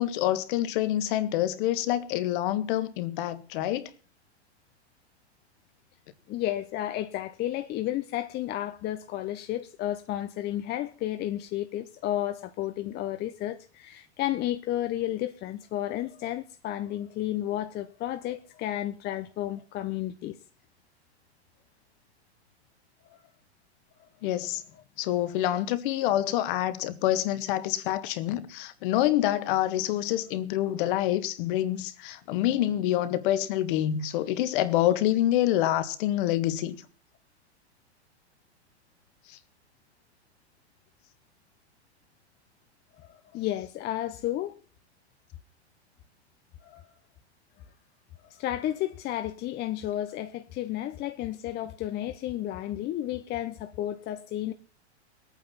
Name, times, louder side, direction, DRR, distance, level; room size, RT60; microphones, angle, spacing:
voice 1, 0.0-3.9 24.2-24.6 25.0-36.8 39.3-39.4, left 13 dB, 50° left, 1.8 m, -27 dB
voice 2, 6.3-20.4 23.1-23.2 43.0-44.5 46.6-46.8 48.2-54.5, left 13 dB, 30° left, 1.0 m, -32 dB
20.5 x 9.1 x 5.9 m
hypercardioid pair, 110°, 34 cm